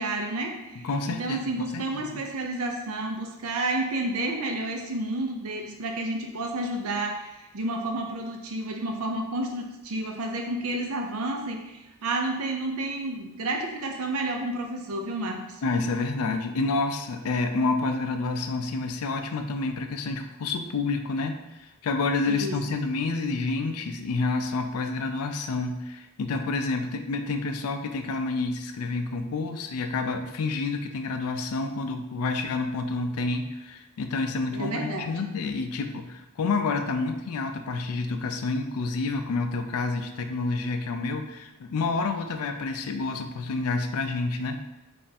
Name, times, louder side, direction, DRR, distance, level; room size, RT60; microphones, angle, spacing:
voice 1, 0.0-15.6 22.3-22.6 34.5-35.2, right 2 dB, 70° right, 2 dB, 0.6 m, -31 dB
voice 2, 0.8-1.4 1.7-2.2 15.6-21.4 21.8-44.6, left 3 dB, 75° left, 6 dB, 0.4 m, -29 dB
3.4 x 2.5 x 4.1 m, 0.99 s
head